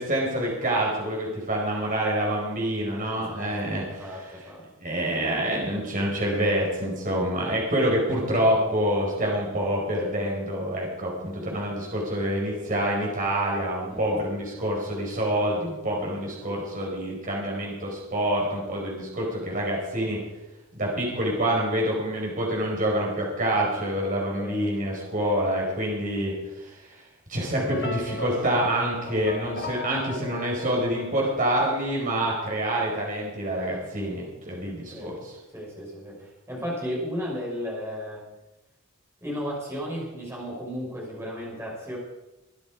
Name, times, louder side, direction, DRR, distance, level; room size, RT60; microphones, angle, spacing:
voice 1, 0.0-4.0 4.8-20.2 20.8-26.8 27.3-35.3, right 1 dB, 40° right, -2 dB, 5.1 m, -27 dB
voice 2, 3.2-3.6 3.9-4.6 13.9-14.2 24.2-24.7 25.0-25.7 34.9-35.1 35.5-38.2 39.2-42.0, equal, 10° right, -4 dB, 6.0 m, -35 dB
sound 1, 27.7-32.0, left 3 dB, 45° left, 1.4 m, -37 dB
22.5 x 9.9 x 4.9 m, 1.0 s
head